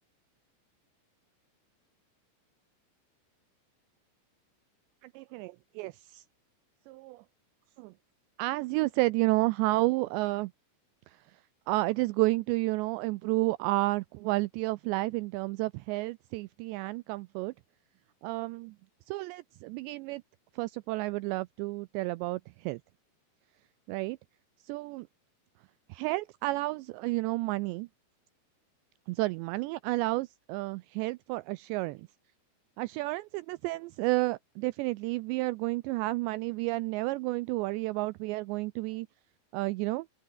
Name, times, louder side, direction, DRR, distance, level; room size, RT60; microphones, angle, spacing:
voice 1, 5.0-6.2 6.9-7.2 7.8-7.9 8.4-10.5 11.1-11.4 11.7-17.5 18.2-18.8 19.1-20.2 20.5-22.8 23.9-24.2 24.6-25.1 25.9-27.9 29.1-32.1 32.8-39.1 39.5-40.1, right 21 dB, 90° right, 2.5 m, -31 dB
open air
omnidirectional pair, 5.6 m